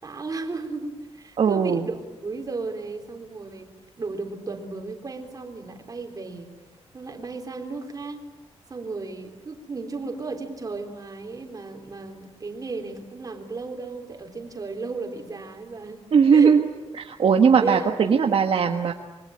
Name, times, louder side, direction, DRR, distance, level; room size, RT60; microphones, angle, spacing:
voice 1, 0.0-3.7 4.0-6.5 6.9-8.2 8.7-16.0 16.3-16.6 17.6-18.3, right 3 dB, 35° right, 4 dB, 3.6 m, -34 dB
voice 2, 1.4-1.9 16.1-16.7 17.0-18.9, right 6 dB, 55° right, 4 dB, 1.5 m, -19 dB
26.5 x 23.5 x 8.8 m, 1.1 s
wide cardioid pair, 155°, 11 cm